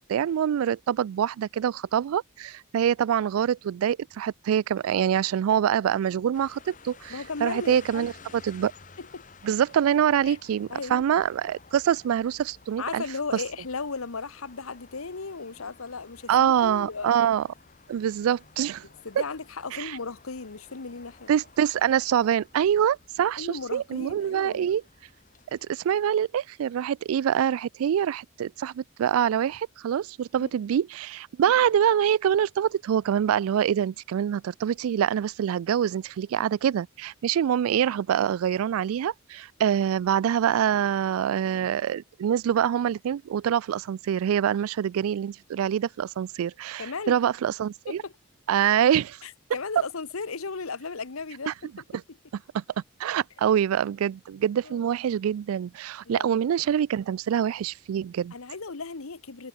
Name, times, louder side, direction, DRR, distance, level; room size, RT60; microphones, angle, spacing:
voice 1, 0.1-8.7 9.4-13.0 16.3-17.4 17.9-18.9 19.7-20.0 21.3-24.8 25.5-48.0 48.5-49.2 51.5-51.6 52.5-52.6 53.0-58.3, right 9 dB, 85° right, 0.3 m, -25 dB
sound 1, 6.3-25.8, left 4 dB, 35° left, 1.3 m, -53 dB
voice 2, 7.1-8.1 9.0-9.2 10.2-10.4 10.7-11.0 12.8-17.3 19.0-21.3 23.4-24.8 30.4-30.5 46.8-47.2 47.9-48.1 49.2-51.7 54.6-54.9 56.1-56.5 58.3-59.5, left 4 dB, 90° left, 1.2 m, -36 dB
head